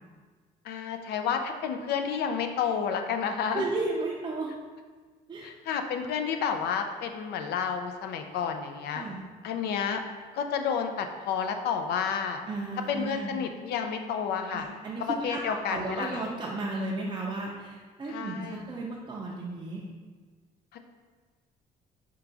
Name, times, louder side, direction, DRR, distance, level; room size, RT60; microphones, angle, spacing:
voice 1, 0.6-3.6 5.4-9.0 9.4-10.0 10.3-12.4 12.9-14.7 15.0-16.2 18.1-18.6 20.7-20.8, left 7 dB, 70° left, 6 dB, 0.4 m, -30 dB
voice 2, 3.5-4.5 5.3-5.5 8.9-9.2 12.5-13.3 14.5-19.8, right 2 dB, 25° right, -4 dB, 0.5 m, -34 dB
4.5 x 2.3 x 3.8 m, 1.4 s
cardioid pair, 110°, 17 cm